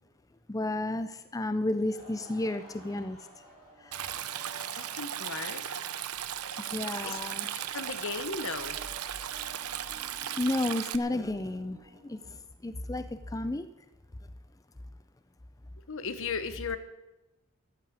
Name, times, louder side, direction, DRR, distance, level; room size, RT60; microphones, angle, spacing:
voice 1, 0.5-3.2 3.8-4.3 5.3-5.6 6.6-7.5 10.4-12.4 12.6-13.7, left 2 dB, 15° left, 11 dB, 0.5 m, -32 dB
Laughter / Crowd, 1.5-7.7, equal, 40° left, 7.7 m, -55 dB
sound 1, 2.7-12.4, right 2 dB, 30° right, 2.6 m, -54 dB
Stream, 3.9-11.0, right 10 dB, 90° right, 0.8 m, -36 dB
voice 2, 4.5-5.6 7.0-7.2 7.7-8.8 15.9-16.8, left 4 dB, 65° left, 11 dB, 1.2 m, -36 dB
14.0 x 8.6 x 9.5 m, 1.0 s
head